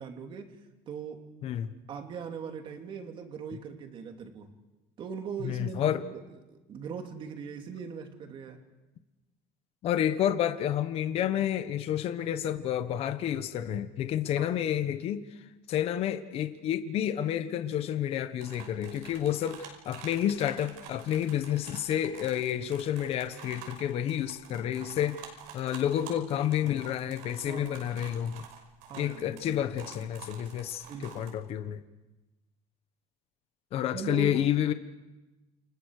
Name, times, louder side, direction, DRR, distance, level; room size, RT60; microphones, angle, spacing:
voice 1, 0.0-1.3 1.9-4.5 5.0-6.2 6.5-8.6 14.4-14.5 27.4-28.0 28.9-29.6 30.8-31.3 33.9-34.5, right 6 dB, 35° right, 2.9 m, -40 dB
voice 2, 1.4-1.7 5.4-6.0 9.8-15.2 15.7-28.4 28.9-31.8 33.7-34.7, left 10 dB, 40° left, 1.2 m, -30 dB
sound 1, 18.4-31.3, right 7 dB, 90° right, 5.7 m, -49 dB
29.5 x 27.0 x 6.7 m
cardioid pair, 170°, 15 cm